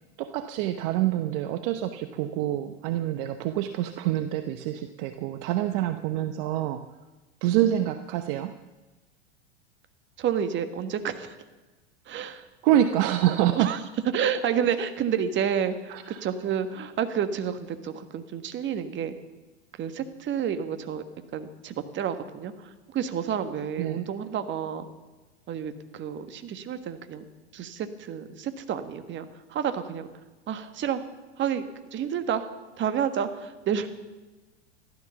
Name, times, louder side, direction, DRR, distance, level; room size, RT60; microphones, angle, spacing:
voice 1, 0.2-6.8 7.4-8.5 12.6-13.7 15.9-16.2 23.8-24.0, right 12 dB, 50° right, 10 dB, 0.9 m, -26 dB
voice 2, 10.2-11.3 12.1-12.4 13.6-13.8 14.1-19.1 19.8-21.0 21.3-24.9 25.5-27.2 27.5-29.2 29.5-30.1 30.5-31.0 31.4-31.6 31.9-32.5 32.8-33.9, right 8 dB, 35° right, 9 dB, 1.5 m, -30 dB
15.0 x 12.5 x 7.1 m, 1.2 s
hypercardioid pair, 95°, 34 cm